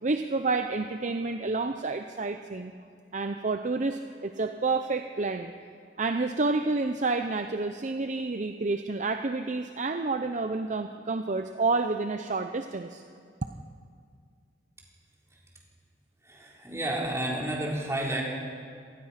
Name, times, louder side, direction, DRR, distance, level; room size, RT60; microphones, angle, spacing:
voice 1, 0.0-2.7 3.1-5.5 6.0-13.0, right 3 dB, 40° right, 7 dB, 0.7 m, -29 dB
voice 2, 16.2-18.2, right 1 dB, 15° right, -3 dB, 4.1 m, -31 dB
24.5 x 19.5 x 5.8 m, 2.2 s
head